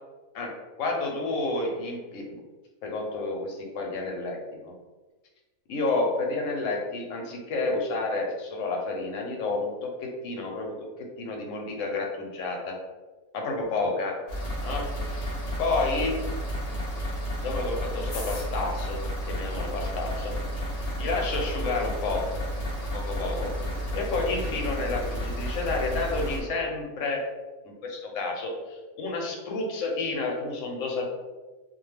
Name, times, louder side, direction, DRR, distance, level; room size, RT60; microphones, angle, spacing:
voice 1, 0.8-2.4 2.8-4.4 4.6-4.7 5.7-12.8 13.3-14.1 14.6-16.2 17.4-19.0 19.3-20.7 21.0-22.2 22.9-23.5 23.9-27.2 27.6-31.1, left 3 dB, 70° left, 1 dB, 0.8 m, -30 dB
sound 1, 14.3-26.4, equal, 85° left, 0.3 m, -32 dB
2.4 x 2.2 x 3.1 m, 1.2 s
omnidirectional pair, 1.5 m